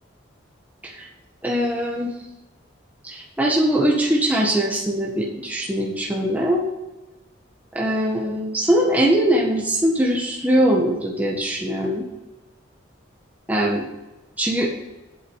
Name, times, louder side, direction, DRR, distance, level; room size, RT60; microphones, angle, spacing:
voice 1, 1.4-2.1 3.0-6.6 7.7-12.1 13.5-13.9 14.4-14.7, right 1 dB, 10° right, -2 dB, 1.5 m, -21 dB
8.8 x 8.3 x 8.6 m, 1.1 s
head